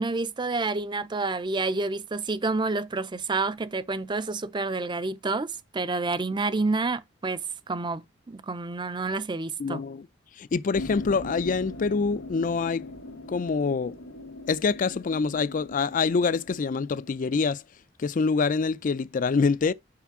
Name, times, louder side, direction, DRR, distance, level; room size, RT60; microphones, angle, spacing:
voice 1, 0.0-7.4 7.7-9.8, right 3 dB, 25° right, 0.5 m, -29 dB
voice 2, 9.6-10.1 10.4-12.8 13.3-13.9 14.5-17.6 18.0-19.7, left 4 dB, 45° left, 0.4 m, -25 dB
sound 1, 10.7-17.3, left 2 dB, 85° left, 1.5 m, -41 dB
5.8 x 4.4 x 6.0 m
head